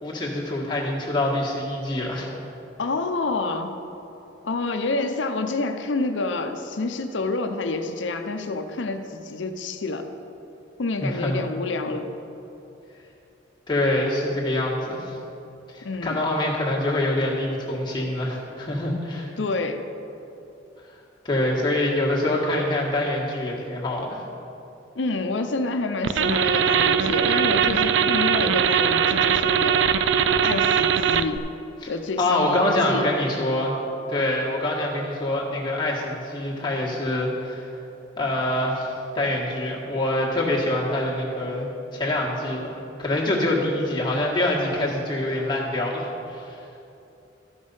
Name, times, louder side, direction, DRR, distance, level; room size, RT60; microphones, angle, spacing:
voice 1, 0.0-2.3 11.0-11.4 13.7-15.1 15.7-19.3 21.2-24.2 31.8-31.9 32.2-33.8 34.1-37.7 38.2-41.7 41.9-46.6, left 1 dB, 25° left, -4 dB, 1.6 m, -25 dB
voice 2, 2.8-3.7 4.4-10.1 10.8-12.1 15.8-16.2 19.4-19.8 25.0-29.8 30.4-31.5 31.9-33.1, left 3 dB, 80° left, 7 dB, 0.7 m, -28 dB
sound 1, 26.0-31.4, right 7 dB, 75° right, 0.3 m, -20 dB
12.5 x 5.3 x 5.5 m, 2.8 s
head